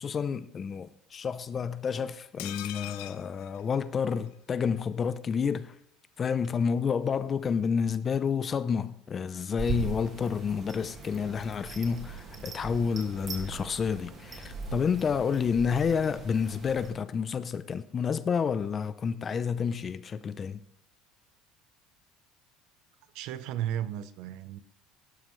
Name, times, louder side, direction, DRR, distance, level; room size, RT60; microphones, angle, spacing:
voice 1, 0.0-5.7 6.2-20.6, left 6 dB, 30° left, 0.6 m, -29 dB
sound 1, 2.4-4.4 4.7-4.8 5.0-5.1, left 15 dB, 80° left, 0.8 m, -42 dB
sound 2, 9.6-16.9, right 4 dB, 30° right, 2.1 m, -40 dB
voice 2, 23.1-24.6, right 11 dB, 65° right, 0.8 m, -34 dB
18.0 x 11.5 x 3.2 m
cardioid pair, 140°, 0 cm